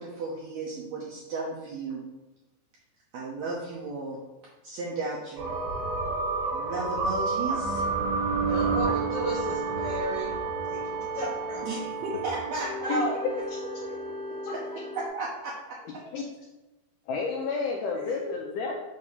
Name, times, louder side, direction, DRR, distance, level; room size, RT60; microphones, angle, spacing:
voice 1, 0.0-2.0 3.1-5.6 6.5-7.9 11.6-12.9 13.8-13.9 14.5-14.6 15.0-15.5 17.9-18.2, right 3 dB, 75° right, -5 dB, 1.7 m, -35 dB
sound 1, 5.4-15.1, right 3 dB, 55° right, 2.0 m, -30 dB
voice 2, 8.5-10.3 10.7-10.8 11.1-11.7 12.8-13.1, equal, 55° left, -7 dB, 1.3 m, -32 dB
voice 3, 17.1-18.7, left 4 dB, 85° left, 0 dB, 1.9 m, -30 dB
6.3 x 2.7 x 5.5 m, 1.0 s
omnidirectional pair, 4.2 m